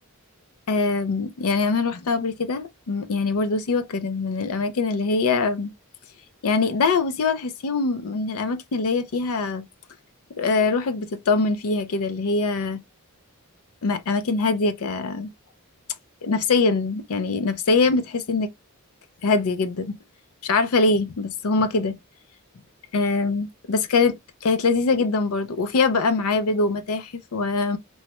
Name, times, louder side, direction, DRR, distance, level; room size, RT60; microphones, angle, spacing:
voice 1, 0.7-5.7 6.4-9.6 10.4-12.8 13.8-15.3 16.2-18.5 19.2-19.9 20.4-22.0 22.9-27.8, left 3 dB, 70° left, 0.5 m, -23 dB
3.0 x 2.3 x 2.9 m
head